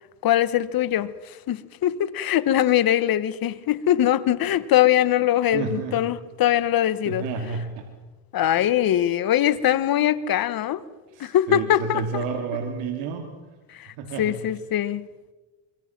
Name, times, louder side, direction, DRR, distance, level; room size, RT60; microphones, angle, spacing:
voice 1, 0.2-7.3 8.3-10.8 11.2-12.2 13.7-15.1, left 11 dB, 50° left, 1.2 m, -22 dB
voice 2, 5.5-6.0 7.0-7.9 8.6-8.7 11.1-13.3 14.0-14.3, right 5 dB, 80° right, 2.9 m, -30 dB
24.5 x 24.5 x 6.0 m
supercardioid pair, 95°, 45 cm